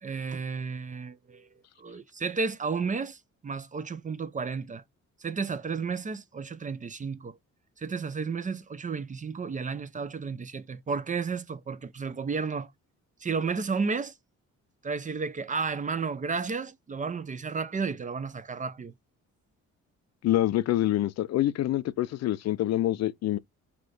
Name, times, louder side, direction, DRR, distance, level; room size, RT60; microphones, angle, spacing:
voice 1, 0.0-1.5 1.8-4.8 5.2-7.4 7.8-12.7 13.2-14.1 14.8-18.9, right 5 dB, 25° right, 0.5 m, -32 dB
voice 2, 20.2-23.4, left 13 dB, 60° left, 0.5 m, -26 dB
3.2 x 2.9 x 3.8 m
cardioid pair, 90°, 30 cm